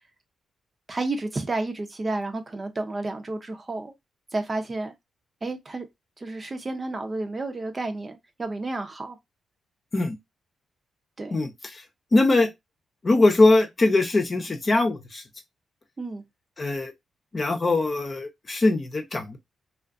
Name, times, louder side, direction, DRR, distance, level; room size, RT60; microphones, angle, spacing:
voice 1, 0.9-3.9 4.3-4.9 5.4-5.9 6.2-9.2 11.2-11.4 16.0-16.2, right 2 dB, 35° right, 0.6 m, -31 dB
voice 2, 11.3-11.8 12.1-12.5 13.0-15.2 16.6-16.9 17.3-19.4, left 2 dB, 40° left, 0.7 m, -21 dB
2.5 x 2.4 x 2.3 m
cardioid pair, 65°, 0 cm